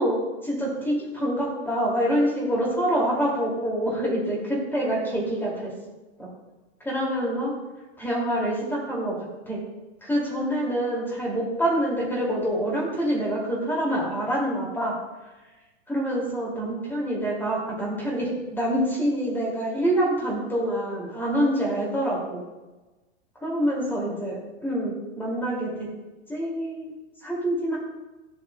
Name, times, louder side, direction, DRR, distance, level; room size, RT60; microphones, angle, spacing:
voice 1, 0.0-5.7 6.2-6.3 6.8-7.5 8.0-9.2 9.5-9.7 10.0-14.9 15.9-22.4 23.4-25.9 26.3-26.9 27.2-27.8, right 1 dB, 5° left, -4 dB, 2.5 m, -26 dB
13.5 x 7.6 x 2.3 m, 1.2 s
hypercardioid pair, 140°, 37 cm